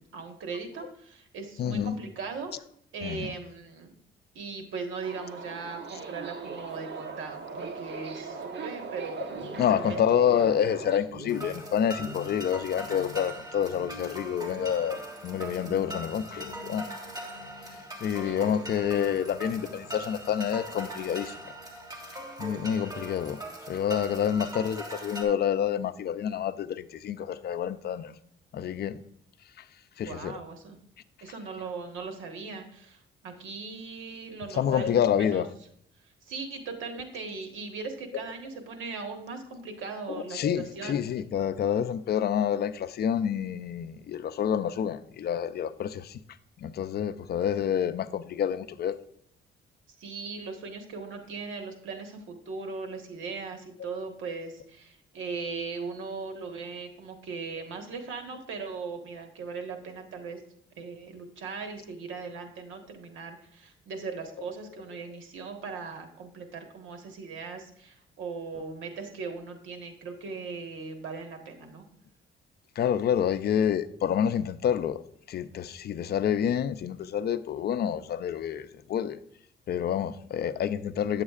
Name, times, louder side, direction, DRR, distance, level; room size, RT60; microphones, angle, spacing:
voice 1, 0.0-2.5 2.9-3.9 4.3-9.3 9.7-10.0 18.1-18.5 30.0-30.8 31.2-35.4 36.2-41.0 50.0-60.4 60.7-71.8, right 4 dB, 80° right, 1.4 m, -39 dB
voice 2, 1.6-2.0 3.0-3.3 9.6-16.8 18.0-21.4 22.4-23.4 23.7-28.1 28.5-29.0 30.0-30.4 34.5-35.5 40.1-46.2 46.6-48.9 72.8-75.0 75.3-79.2 79.7-81.2, left 9 dB, 55° left, 0.5 m, -28 dB
Subway metro underground, 5.0-11.0, right 5 dB, 60° right, 1.1 m, -39 dB
sound 1, 9.3-22.2, left 1 dB, 45° right, 1.9 m, -48 dB
sound 2, 11.3-25.2, right 1 dB, 20° right, 1.6 m, -41 dB
9.4 x 7.3 x 2.4 m
cardioid pair, 90°, 20 cm